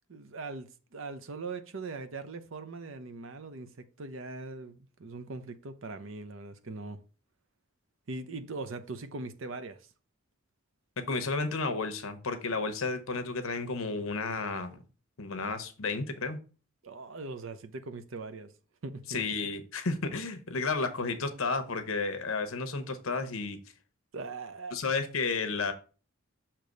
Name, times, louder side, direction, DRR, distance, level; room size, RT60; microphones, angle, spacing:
voice 1, 0.1-7.0 8.1-9.9 16.8-18.5 18.8-19.2 24.1-24.8, right 3 dB, 65° right, 0.7 m, -41 dB
voice 2, 11.0-14.8 15.2-16.4 19.1-23.6 24.7-25.7, left 4 dB, 75° left, 0.9 m, -32 dB
6.6 x 3.0 x 5.1 m
head